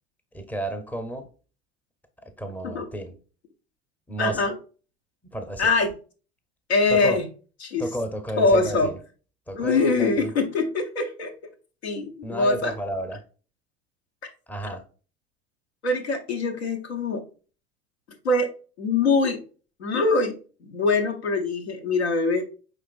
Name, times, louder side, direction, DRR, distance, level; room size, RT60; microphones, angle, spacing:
voice 1, 0.3-1.3 2.2-3.1 4.1-4.5 5.2-5.7 6.9-7.2 7.8-9.0 9.5-10.3 12.2-13.2 14.5-14.9, right 1 dB, 5° left, 8 dB, 0.7 m, -32 dB
voice 2, 4.2-4.5 5.6-5.9 6.7-7.2 7.6-7.8 8.4-8.9 9.5-11.3 11.8-12.7 15.8-17.2 18.1-18.5 18.8-19.4 19.8-20.3 20.6-22.4, left 3 dB, 75° left, 4 dB, 0.8 m, -23 dB
5.1 x 3.4 x 2.4 m, 0.36 s
figure-of-eight pair, 65°, 32 cm